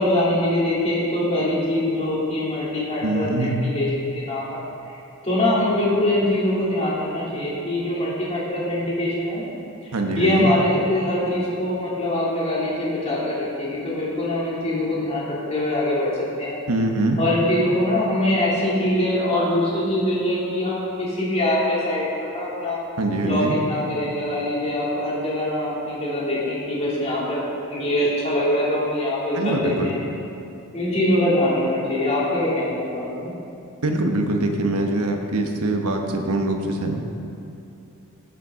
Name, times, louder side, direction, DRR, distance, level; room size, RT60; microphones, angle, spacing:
voice 1, 0.0-4.6 5.2-16.1 16.4-16.6 17.2-22.8 23.2-30.0 30.7-33.3, left 1 dB, 30° left, -7 dB, 2.8 m, -23 dB
voice 2, 3.0-3.6 9.9-10.5 16.7-17.2 23.0-23.6 29.3-29.9 33.8-36.9, right 2 dB, 80° right, 3 dB, 1.1 m, -23 dB
17.0 x 7.1 x 3.7 m, 2.7 s
head